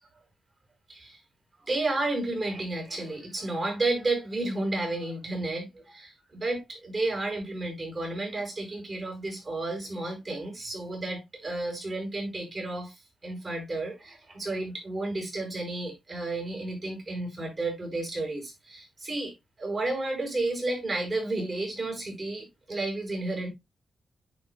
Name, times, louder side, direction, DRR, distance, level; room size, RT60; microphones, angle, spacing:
voice 1, 0.9-1.2 1.6-12.9 13.2-23.5, right 2 dB, 35° right, 5.5 m, -32 dB
10.5 x 5.1 x 2.3 m
cardioid pair, 90°, 0 cm